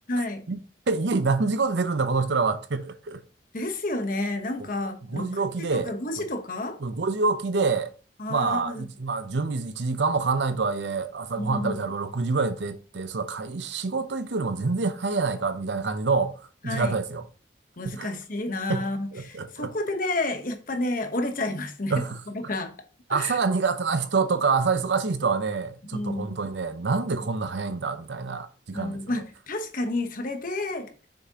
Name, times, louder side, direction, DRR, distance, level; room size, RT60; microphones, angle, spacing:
voice 1, 0.1-0.4 3.5-6.8 8.2-8.9 11.4-11.9 16.6-17.0 17.8-21.9 22.3-22.7 23.1-23.4 25.9-26.4 28.7-30.9, left 2 dB, 50° left, 1.1 m, -30 dB
voice 2, 0.9-3.2 5.1-6.3 6.8-7.9 8.3-16.3 16.6-17.2 17.8-18.1 18.7-18.8 19.1-19.7 21.9-22.2 23.1-29.0, right 4 dB, 80° right, 0.7 m, -26 dB
6.5 x 6.0 x 2.9 m
head